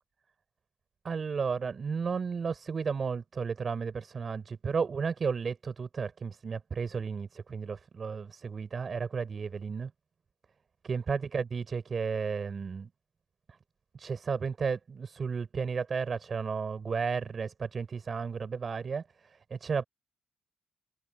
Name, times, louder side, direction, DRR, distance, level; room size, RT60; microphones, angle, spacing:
voice 1, 1.0-9.9 10.9-12.9 13.5-13.6 13.9-19.8, right 5 dB, 40° right, 5.6 m, -33 dB
cardioid pair, 90°, 0 cm